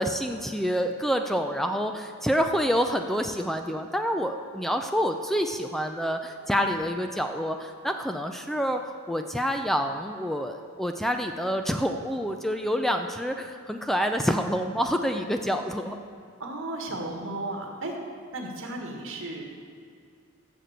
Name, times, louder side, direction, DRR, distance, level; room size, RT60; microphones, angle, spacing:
voice 1, 0.0-8.8 9.1-16.0, equal, ahead, 5 dB, 0.5 m, -27 dB
voice 2, 16.4-17.9 18.3-19.4, right 2 dB, 65° right, 2 dB, 1.9 m, -34 dB
15.0 x 6.1 x 8.1 m, 2.3 s
head